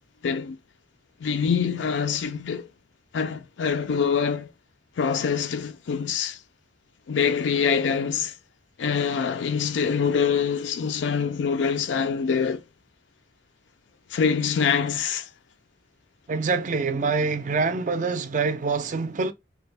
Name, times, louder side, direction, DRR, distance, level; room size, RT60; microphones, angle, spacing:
voice 1, 0.2-0.6 1.2-2.7 3.1-4.5 5.0-6.4 7.1-8.3 8.8-12.6 14.1-15.3, left 6 dB, 80° left, 0.4 m, -25 dB
voice 2, 16.3-19.3, right 4 dB, 45° right, 0.4 m, -25 dB
3.3 x 2.1 x 3.2 m
head